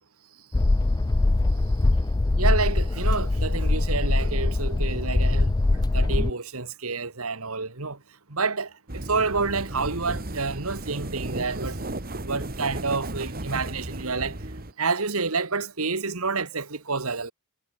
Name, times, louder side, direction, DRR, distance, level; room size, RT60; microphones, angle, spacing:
sound 1, 0.5-6.3, left 2 dB, 20° left, 0.4 m, -22 dB
voice 1, 2.4-8.0 8.3-11.8 12.2-14.4 14.8-17.3, right 4 dB, 70° right, 2.1 m, -29 dB
sound 2, 8.9-14.7, right 1 dB, 45° right, 2.8 m, -34 dB
head